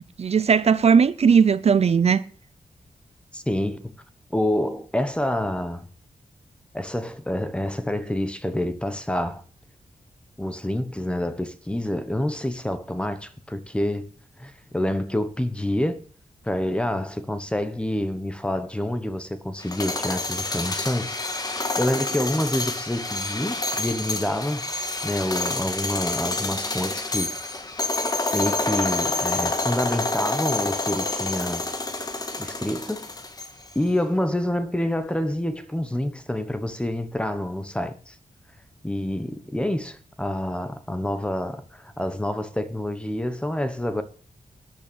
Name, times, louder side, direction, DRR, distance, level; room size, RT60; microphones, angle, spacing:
voice 1, 0.2-2.2, right 6 dB, 50° right, 0.6 m, -18 dB
voice 2, 3.3-3.9 4.3-5.9 6.7-9.4 10.4-14.1 14.4-16.0 16.4-24.6 25.0-27.3 28.3-31.7 32.4-33.1 33.7-38.2 38.8-44.0, left 1 dB, 5° left, 1.2 m, -27 dB
sound 1, 19.6-33.7, left 2 dB, 30° left, 1.7 m, -28 dB
13.5 x 8.5 x 7.0 m
wide cardioid pair, 165°, 14 cm